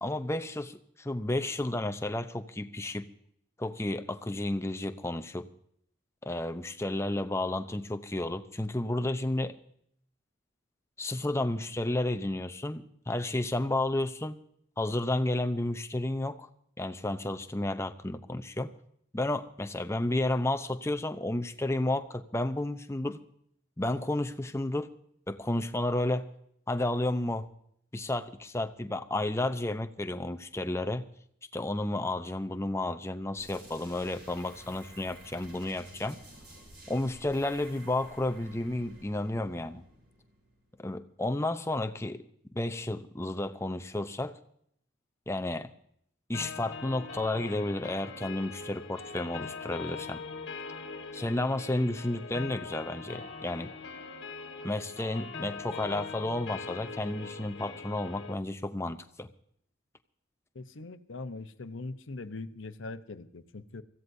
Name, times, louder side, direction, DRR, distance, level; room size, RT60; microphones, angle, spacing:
voice 1, 0.0-3.1 3.6-5.5 6.2-9.5 11.0-14.4 14.8-16.5 16.8-18.7 19.1-23.2 23.8-24.9 25.3-26.3 26.7-27.5 27.9-31.1 31.5-36.2 36.9-39.8 40.8-42.2 42.5-44.4 45.3-45.7 46.3-50.2 51.1-53.7 54.6-59.3, left 1 dB, 15° left, 9 dB, 0.6 m, -32 dB
sound 1, 33.4-40.9, right 1 dB, 55° right, 7.6 m, -52 dB
sound 2, 46.3-58.3, left 4 dB, 55° left, 1.6 m, -42 dB
voice 2, 60.5-63.8, left 3 dB, 75° left, 10 dB, 0.9 m, -41 dB
24.5 x 15.5 x 2.7 m, 0.69 s
head